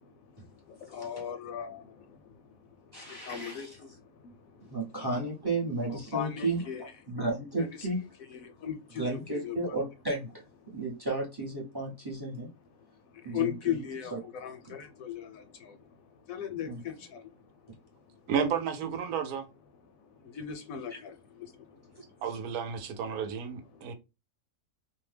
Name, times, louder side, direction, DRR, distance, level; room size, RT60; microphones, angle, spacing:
voice 1, 0.9-1.8 3.2-3.7 5.9-6.9 7.6-7.9 8.3-9.8 13.3-15.4 16.3-16.9 20.3-21.1, left 9 dB, 70° left, 0.9 m, -36 dB
voice 2, 2.9-3.8 4.7-6.6 7.1-8.0 9.0-10.4 10.7-12.5 13.2-13.8 14.1-14.2 16.7-16.8 20.9-21.0 22.0-22.1, right 2 dB, 25° right, 0.5 m, -33 dB
voice 3, 18.3-19.5 22.2-23.9, right 7 dB, 75° right, 1.0 m, -32 dB
2.7 x 2.0 x 3.2 m
omnidirectional pair, 1.7 m